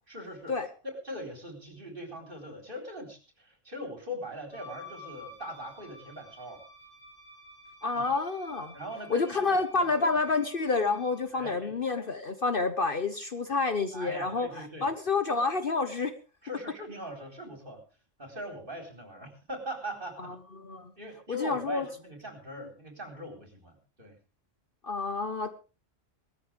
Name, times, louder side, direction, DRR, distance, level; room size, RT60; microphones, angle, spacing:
voice 1, 0.1-0.6 0.9-6.6 7.9-8.2 8.7-10.1 11.3-11.7 13.9-14.9 16.4-17.8 18.2-20.3 21.0-24.2, equal, 45° right, 3 dB, 4.3 m, -41 dB
Wind instrument woodwind instrument, 4.5-11.3, left 1 dB, 20° left, 6.5 m, -51 dB
voice 2, 7.8-8.7 9.1-16.1 20.6-20.9 21.3-21.9 24.8-25.5, left 4 dB, 45° left, 9 dB, 1.2 m, -29 dB
19.5 x 14.0 x 3.5 m, 0.33 s
omnidirectional pair, 1.3 m